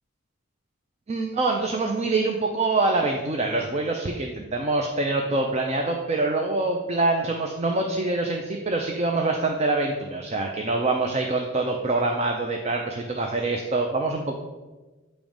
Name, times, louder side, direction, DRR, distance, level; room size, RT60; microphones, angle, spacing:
voice 1, 1.1-14.3, right 2 dB, 30° right, 2 dB, 0.4 m, -25 dB
8.7 x 3.0 x 5.0 m, 1.2 s
head